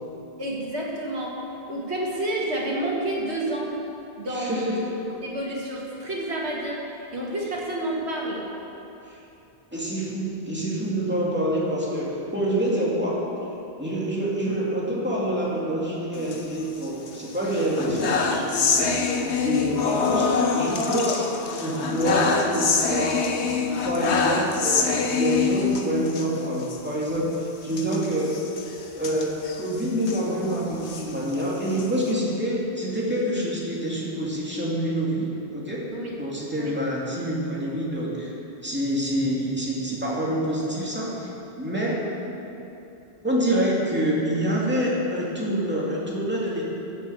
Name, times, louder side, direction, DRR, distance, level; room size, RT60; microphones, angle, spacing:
voice 1, 0.4-1.4 1.7-3.7 4.2-4.9 5.2-8.4 35.9-36.2 36.6-36.7, right 1 dB, 80° right, -3 dB, 2.4 m, -29 dB
voice 2, 4.3-4.9 9.1-9.2 9.7-13.2 13.8-18.9 19.4-23.2 23.8-28.4 29.0-35.9 36.2-38.3 38.6-41.3 41.6-42.0 43.2-46.6, right 1 dB, 10° right, -5 dB, 2.5 m, -26 dB
sound 1, 16.1-17.1 17.5-26.3 26.6-26.8 27.0-27.2 27.7-30.2 30.7-32.1, left 5 dB, 85° left, 1.3 m, -25 dB
12.5 x 7.6 x 8.0 m, 3.0 s
omnidirectional pair, 1.1 m